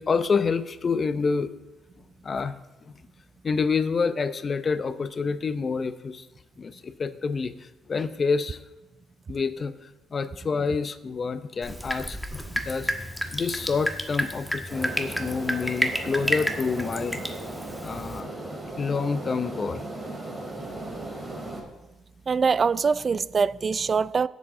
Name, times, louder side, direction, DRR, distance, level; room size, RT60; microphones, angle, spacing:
voice 1, 0.0-1.5 2.2-2.6 3.4-6.2 6.6-7.5 7.9-8.6 9.3-9.7 10.1-12.9 13.3-17.2 17.8-18.3 18.8-19.8, left 5 dB, 40° left, 0.7 m, -27 dB
Drip, 11.6-18.2, equal, ahead, 1.2 m, -31 dB
sound 1, 14.7-21.6, right 2 dB, 20° right, 3.3 m, -37 dB
voice 2, 22.3-24.3, right 5 dB, 40° right, 0.3 m, -23 dB
17.0 x 7.4 x 3.8 m
cardioid pair, 90°, 0 cm